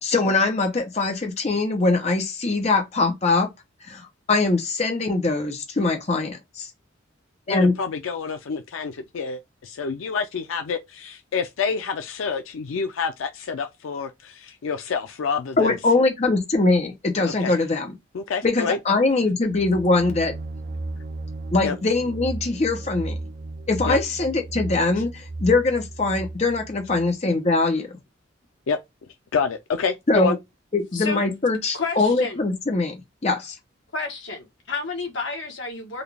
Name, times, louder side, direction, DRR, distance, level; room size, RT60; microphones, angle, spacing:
voice 1, 0.0-3.5 3.9-6.7 7.5-7.7 15.6-18.0 18.4-20.3 21.5-23.2 23.7-28.0 30.1-30.3 30.7-33.0 33.2-33.5, left 3 dB, 35° left, 0.7 m, -22 dB
voice 2, 7.5-15.8 17.4-17.5 18.1-18.8 21.6-21.7 23.9-24.0 28.7-28.8 29.3-30.4, left 5 dB, 90° left, 0.4 m, -28 dB
sound 1, 19.4-27.2, right 2 dB, 45° right, 0.4 m, -35 dB
voice 3, 30.9-31.3 31.7-32.4 33.9-36.0, left 4 dB, 70° left, 1.2 m, -31 dB
3.9 x 2.3 x 3.3 m
head